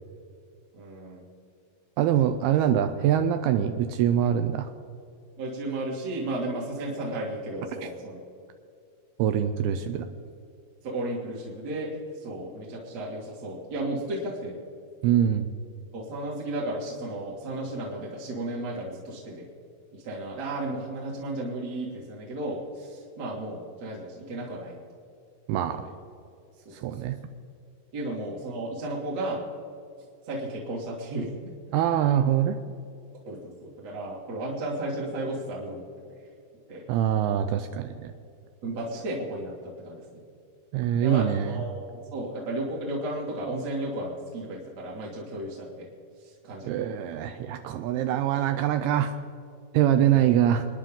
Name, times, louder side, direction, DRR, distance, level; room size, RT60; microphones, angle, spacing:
voice 1, 0.7-1.3 2.7-2.8 5.4-8.2 10.8-14.6 15.9-19.4 19.9-24.8 25.7-25.8 26.7-27.0 27.9-29.4 30.3-31.3 33.3-36.1 36.7-36.8 38.6-40.2 41.0-45.9 46.2-46.8 50.1-50.3, right 1 dB, 45° right, -4 dB, 2.7 m, -34 dB
voice 2, 2.0-4.7 9.2-10.1 15.0-15.5 25.5-25.8 26.7-27.2 31.7-32.6 36.9-38.1 40.7-41.6 46.7-49.2 49.7-50.7, right 10 dB, 85° right, 8 dB, 2.3 m, -24 dB
27.0 x 10.0 x 3.8 m, 2.5 s
omnidirectional pair, 5.0 m